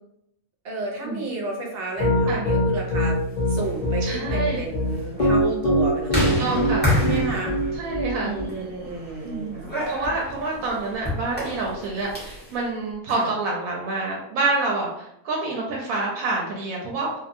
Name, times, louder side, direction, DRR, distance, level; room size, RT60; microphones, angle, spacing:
voice 1, 0.6-3.2 3.5-7.5 8.2-9.7 13.1-13.3, right 3 dB, 55° right, -1 dB, 0.8 m, -32 dB
Piano, 2.0-8.4, equal, 55° left, 0.4 m, -22 dB
sound 1, 3.4-12.5, left 1 dB, 10° left, 0.8 m, -30 dB
voice 2, 4.0-4.6 6.4-6.9 7.7-8.3 9.2-9.6 9.9-17.2, right 3 dB, 85° right, -2 dB, 1.0 m, -27 dB
2.7 x 2.4 x 2.5 m, 0.79 s
omnidirectional pair, 1.5 m